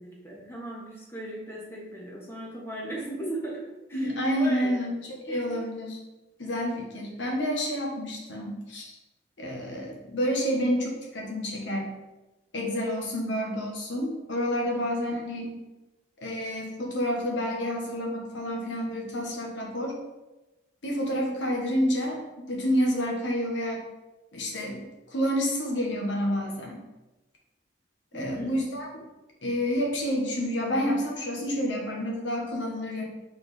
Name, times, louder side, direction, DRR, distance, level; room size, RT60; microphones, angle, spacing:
voice 1, 0.0-4.8 5.3-5.6 15.0-15.1 28.1-28.6, right 1 dB, 15° left, -4 dB, 1.4 m, -37 dB
voice 2, 3.9-5.0 5.2-6.0 6.4-8.9 9.4-12.0 12.5-15.5 16.2-19.9 20.8-23.8 24.3-26.8 28.1-28.9 29.4-33.1, equal, 85° left, -1 dB, 1.3 m, -29 dB
4.7 x 4.2 x 5.1 m, 1.0 s
head